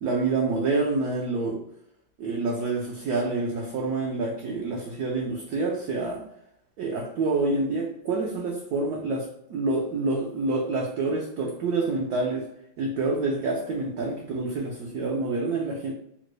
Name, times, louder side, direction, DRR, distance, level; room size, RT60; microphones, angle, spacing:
voice 1, 0.0-1.6 2.2-6.2 6.8-12.5 12.8-15.9, right 3 dB, 80° right, -1 dB, 0.8 m, -27 dB
3.8 x 2.1 x 3.1 m, 0.76 s
omnidirectional pair, 2.2 m